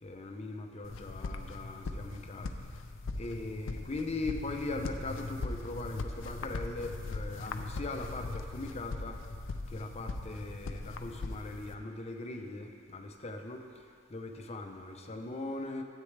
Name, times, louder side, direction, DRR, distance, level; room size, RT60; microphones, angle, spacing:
voice 1, 0.0-2.5 3.2-9.2 9.7-13.6 14.1-15.8, left 2 dB, 35° left, 4 dB, 0.7 m, -40 dB
sound 1, 0.8-11.8, left 3 dB, 75° left, 0.5 m, -40 dB
13.0 x 8.3 x 3.3 m, 2.2 s
head